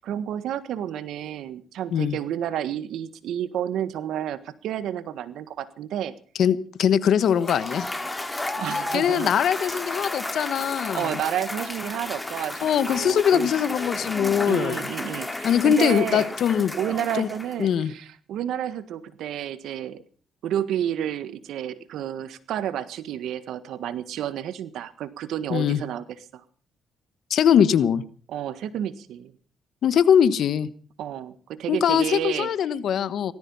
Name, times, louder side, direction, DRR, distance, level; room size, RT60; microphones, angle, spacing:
voice 1, 0.0-6.1 8.6-9.3 10.9-13.5 14.4-16.3 16.8-20.0 20.4-26.0 26.3-26.4 28.3-29.3 31.0-32.5, right 10 dB, 80° right, 14 dB, 1.5 m, -30 dB
voice 2, 6.4-7.9 8.9-11.1 12.6-14.8 15.4-16.7 17.2-17.3 17.6-17.9 25.5-25.8 27.3-28.0 29.8-30.7 31.7-33.3, left 8 dB, 65° left, 16 dB, 1.2 m, -21 dB
Cheering / Applause / Crowd, 7.2-17.7, left 2 dB, 15° left, 2.6 m, -33 dB
18.5 x 14.0 x 5.6 m, 0.43 s
cardioid pair, 90°, 0 cm